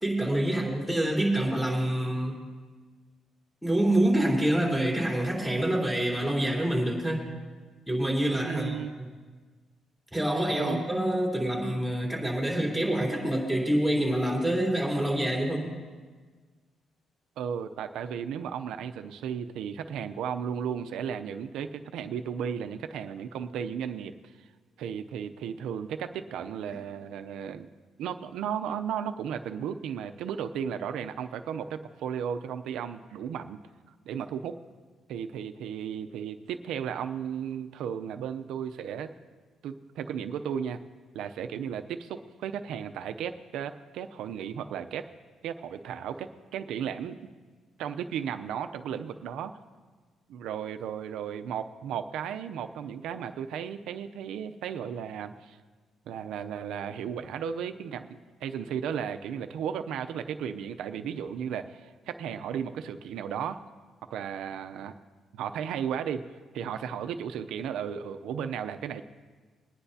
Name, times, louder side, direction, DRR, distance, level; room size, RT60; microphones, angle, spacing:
voice 1, 0.0-2.4 3.6-7.3 7.9-8.8 10.1-15.7, right 1 dB, ahead, -3 dB, 3.6 m, -26 dB
voice 2, 8.4-8.9 10.6-10.8 17.4-24.1 24.8-27.7 28.0-33.6 34.1-34.6 35.1-39.1 39.6-40.8 41.1-45.1 45.4-47.3 47.8-49.5 50.3-55.6 56.1-63.6 64.1-64.9 65.3-66.2 66.5-69.0, right 8 dB, 85° right, 8 dB, 0.6 m, -34 dB
22.0 x 10.0 x 2.8 m, 1.4 s
cardioid pair, 90°, 0 cm